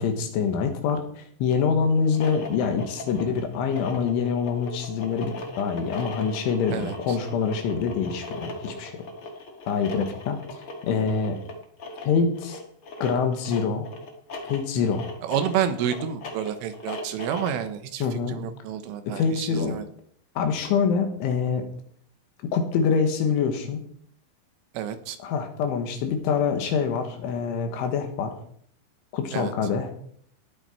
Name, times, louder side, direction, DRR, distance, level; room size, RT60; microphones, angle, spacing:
voice 1, 0.0-8.9 9.7-10.4 10.9-11.4 12.1-12.6 13.0-13.9 14.5-15.0 18.0-18.4 19.1-19.8 20.4-21.7 22.5-23.8 25.2-28.3 29.1-29.9, left 6 dB, 75° left, 6 dB, 4.0 m, -25 dB
sound 1, 2.0-17.7, left 2 dB, 60° left, 1.4 m, -38 dB
voice 2, 6.7-7.2 15.2-19.9 24.8-25.2 29.3-29.5, right 9 dB, 80° right, 9 dB, 3.6 m, -29 dB
18.0 x 9.0 x 4.5 m, 0.63 s
omnidirectional pair, 5.7 m